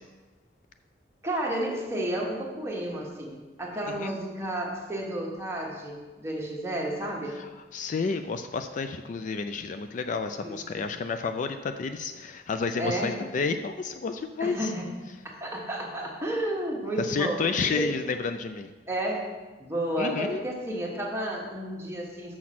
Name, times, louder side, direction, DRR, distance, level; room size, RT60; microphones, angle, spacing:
voice 1, 1.2-7.4 10.4-10.8 12.8-13.2 14.4-14.9 15.2-18.0 18.9-19.3 19.6-22.4, right 1 dB, 15° right, -2 dB, 1.3 m, -32 dB
voice 2, 7.4-14.7 17.0-18.7 20.0-20.4, left 4 dB, 45° left, 8 dB, 0.4 m, -31 dB
6.2 x 6.0 x 5.9 m, 1.3 s
head